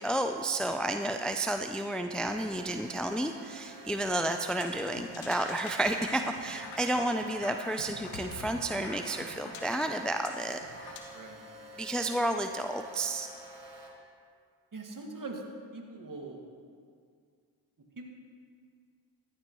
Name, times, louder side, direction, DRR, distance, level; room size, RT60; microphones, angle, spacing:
voice 1, 0.0-10.6 11.8-13.3, right 1 dB, ahead, 6 dB, 0.5 m, -31 dB
sound 1, 2.2-13.9, right 3 dB, 65° right, 2.1 m, -49 dB
sound 2, 4.4-11.0, left 4 dB, 85° left, 1.1 m, -46 dB
voice 2, 14.7-15.4 15.7-16.4 18.0-18.1, right 3 dB, 40° right, 1 dB, 2.1 m, -42 dB
14.0 x 10.5 x 3.2 m, 2.1 s
supercardioid pair, 40°, 46 cm